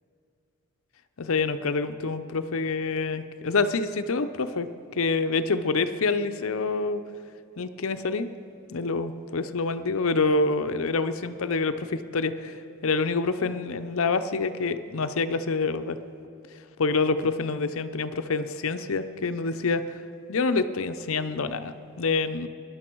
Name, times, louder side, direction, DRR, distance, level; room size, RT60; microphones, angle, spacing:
voice 1, 1.2-7.0 7.6-8.3 8.7-16.0 16.8-20.0 20.3-22.5, left 3 dB, 70° left, 10 dB, 0.6 m, -27 dB
19.5 x 11.5 x 4.6 m, 2.7 s
head